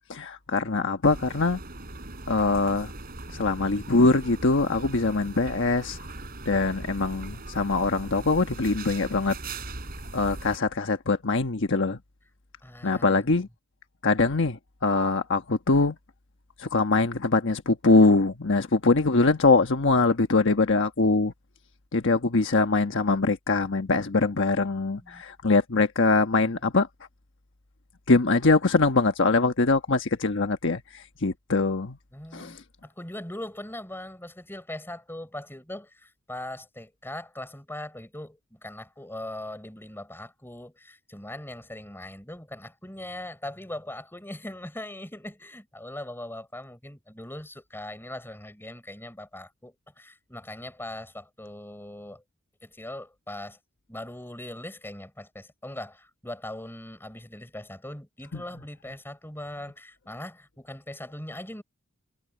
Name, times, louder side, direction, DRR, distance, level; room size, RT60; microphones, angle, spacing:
voice 1, 0.0-1.6 2.3-2.9 3.3-6.0 6.5-9.4 10.1-12.0 12.8-13.5 14.0-15.9 16.6-21.3 21.9-26.9 28.1-32.0 32.3-32.5, left 3 dB, 60° left, 1.2 m, -23 dB
sound 1, 1.0-10.6, right 2 dB, 45° right, 4.6 m, -40 dB
voice 2, 12.6-13.2 24.9-25.2 32.1-52.2 52.6-53.6 53.9-61.6, left 1 dB, 10° left, 4.6 m, -40 dB
head